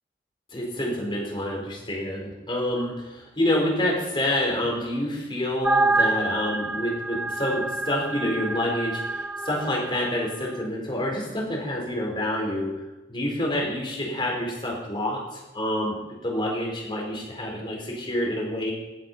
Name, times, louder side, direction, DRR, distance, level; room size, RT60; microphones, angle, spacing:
voice 1, 0.5-12.7 13.1-15.9 16.2-18.7, left 1 dB, 30° left, -2 dB, 4.4 m, -27 dB
sound 1, 5.6-10.1, right 2 dB, 5° right, 0.4 m, -27 dB
17.0 x 7.7 x 5.6 m, 1.1 s
head